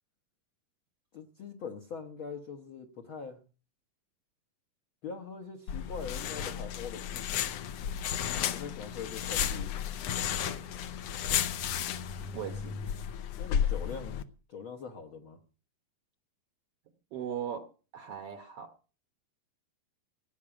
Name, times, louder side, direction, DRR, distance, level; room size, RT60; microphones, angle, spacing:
voice 1, 1.1-3.4 5.0-7.2 8.5-9.8 13.3-14.2 14.5-15.4, left 5 dB, 65° left, 3 dB, 1.3 m, -42 dB
sound 1, 5.7-14.2, left 9 dB, 80° left, 1.4 m, -33 dB
voice 2, 12.2-12.8 17.1-17.7 17.9-18.7, right 9 dB, 65° right, 6 dB, 1.6 m, -38 dB
17.5 x 6.1 x 8.8 m, 0.38 s
omnidirectional pair, 3.9 m